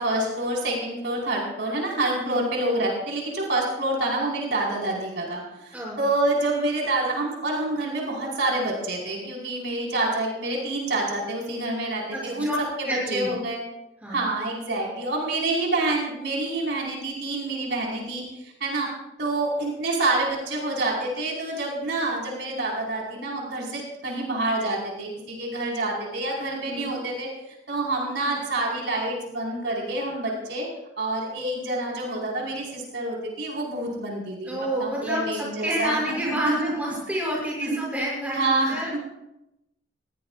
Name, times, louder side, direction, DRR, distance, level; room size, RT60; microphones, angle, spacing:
voice 1, 0.0-12.5 12.8-13.6 14.1-18.9 19.2-27.3 27.7-30.7 31.0-36.7 37.6-37.8 38.3-39.0, right 2 dB, 70° right, -2 dB, 4.7 m, -27 dB
voice 2, 5.7-6.0 12.1-12.6 12.8-13.3 14.0-14.2 26.7-27.0 34.5-38.9, equal, 10° right, -4 dB, 6.9 m, -29 dB
21.0 x 18.0 x 2.5 m, 0.89 s
head